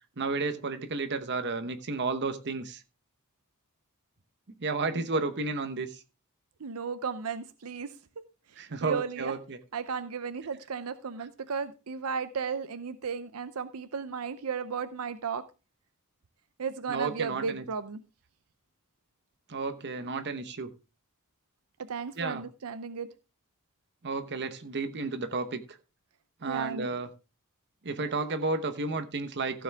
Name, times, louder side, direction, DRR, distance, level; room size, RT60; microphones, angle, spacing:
voice 1, 0.2-2.8 4.6-6.0 8.6-9.6 16.9-17.6 19.5-20.7 22.2-22.4 24.0-25.6 26.4-27.1 27.8-29.6, right 3 dB, 50° right, 8 dB, 1.0 m, -32 dB
voice 2, 6.6-7.9 8.5-9.3 9.7-15.4 16.6-18.0 21.9-23.1 26.4-26.9, right 6 dB, 75° right, 11 dB, 0.6 m, -35 dB
15.5 x 7.1 x 3.4 m, 0.31 s
head